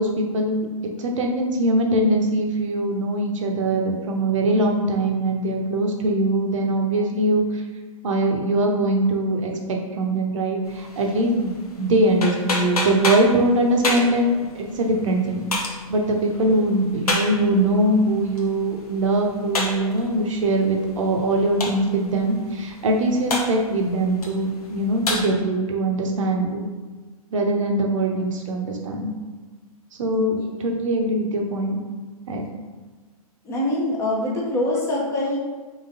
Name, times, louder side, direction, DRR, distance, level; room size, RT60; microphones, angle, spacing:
voice 1, 0.0-7.4 8.0-14.4 14.8-15.5 15.9-26.7 27.3-29.1 30.0-30.4 30.6-31.8 32.3-32.4, right 1 dB, 55° right, 1 dB, 0.7 m, -22 dB
sound 1, 10.7-25.2, left 2 dB, 75° left, 0.8 m, -31 dB
voice 2, 30.1-30.5 33.4-35.4, left 1 dB, 15° left, -3 dB, 0.6 m, -24 dB
3.9 x 3.0 x 2.6 m, 1.4 s
figure-of-eight pair, 120°, 19 cm